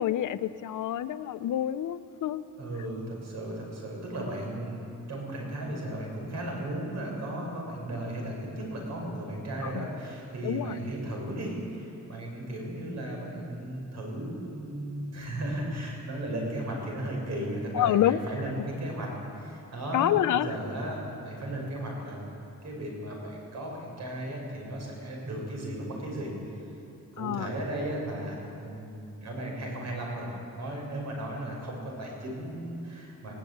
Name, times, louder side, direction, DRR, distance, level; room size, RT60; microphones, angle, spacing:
voice 1, 0.0-2.4 9.6-9.8 10.4-10.7 17.7-18.2 19.9-20.5 27.2-27.5, left 11 dB, 90° left, 14 dB, 0.7 m, -27 dB
voice 2, 2.6-26.3 27.1-33.3, right 1 dB, 65° right, -1 dB, 6.5 m, -35 dB
20.0 x 17.5 x 8.8 m, 2.8 s
wide cardioid pair, 155°, 30 cm